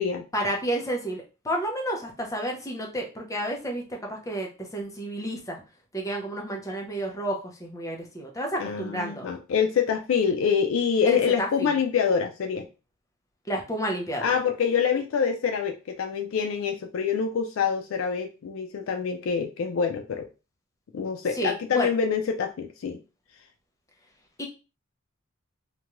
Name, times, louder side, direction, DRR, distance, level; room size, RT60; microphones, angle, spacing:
voice 1, 0.3-3.8 4.1-5.6 5.9-9.3 11.1-11.7 13.5-14.3 21.3-21.9 24.4-24.5, right 1 dB, 15° left, 1 dB, 0.5 m, -31 dB
voice 2, 8.6-12.7 14.2-20.3 20.9-23.0, left 6 dB, 65° left, 5 dB, 0.3 m, -26 dB
2.5 x 2.2 x 3.0 m, 0.31 s
head